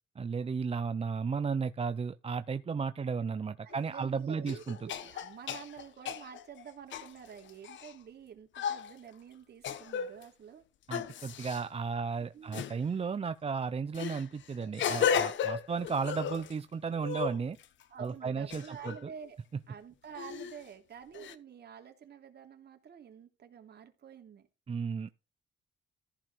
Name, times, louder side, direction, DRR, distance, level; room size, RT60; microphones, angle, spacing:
voice 1, 0.2-4.9 10.9-17.6 18.0-19.1 24.7-25.1, right 5 dB, 30° right, 0.7 m, -34 dB
voice 2, 3.6-10.6 12.3-12.7 17.9-19.4 19.7-24.5, right 8 dB, 55° right, 3.0 m, -49 dB
sound 1, 3.7-3.8 4.5-7.9 8.6-8.9 9.6-10.2 10.9-11.6 12.5-12.8 13.9-16.5 16.9-17.8 18.5-19.0 20.2-20.6 21.1-21.4, left 8 dB, 70° left, 1.3 m, -35 dB
14.5 x 5.2 x 5.1 m
cardioid pair, 90°, 20 cm